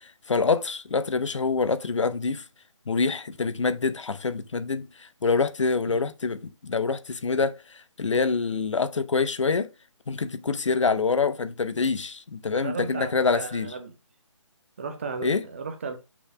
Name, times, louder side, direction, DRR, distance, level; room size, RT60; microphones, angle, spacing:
voice 1, 0.0-2.4 2.9-9.7 10.1-13.7 15.2-15.4, left 4 dB, 70° left, 0.9 m, -26 dB
voice 2, 12.5-13.9 14.8-16.1, right 4 dB, 25° right, 1.0 m, -35 dB
6.0 x 4.1 x 4.8 m
hypercardioid pair, 170°, 16 cm